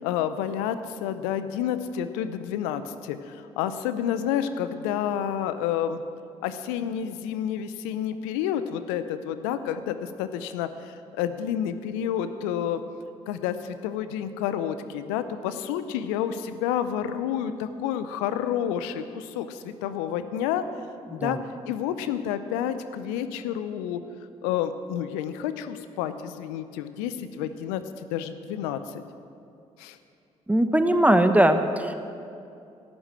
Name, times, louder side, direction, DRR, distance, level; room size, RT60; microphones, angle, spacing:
voice 1, 0.0-6.0 6.4-12.8 13.3-20.7 21.1-21.4 21.7-24.0 24.4-27.8 28.1-29.0 29.8-30.0, left 9 dB, 75° left, 11 dB, 0.6 m, -29 dB
voice 2, 30.5-31.9, right 1 dB, 10° right, 8 dB, 1.0 m, -20 dB
12.0 x 9.8 x 7.5 m, 2.6 s
hypercardioid pair, 45°, 16 cm